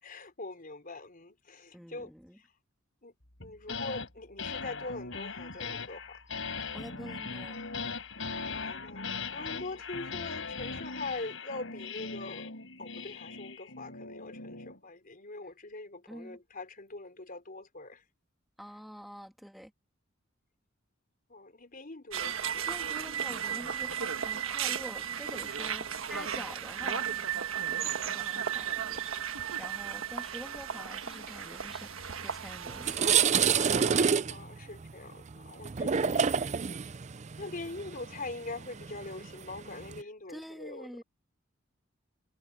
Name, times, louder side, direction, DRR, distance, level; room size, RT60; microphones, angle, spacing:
voice 1, 0.0-2.1 3.0-3.1 3.4-6.2 8.4-12.5 12.8-18.0 21.3-22.7 34.2-36.4 37.4-40.9, left 2 dB, 45° left, 4.1 m, -43 dB
voice 2, 1.7-2.4 6.7-7.6 15.4-15.5 16.1-16.4 18.6-19.7 22.3-33.2 40.3-41.0, equal, ahead, 2.7 m, -47 dB
sound 1, 3.4-4.1 4.4-14.8, left 4 dB, 70° left, 5.1 m, -39 dB
sound 2, 22.1-34.1, right 8 dB, 80° right, 1.4 m, -35 dB
sound 3, 32.2-32.3 32.7-40.0, right 7 dB, 35° right, 0.5 m, -28 dB
head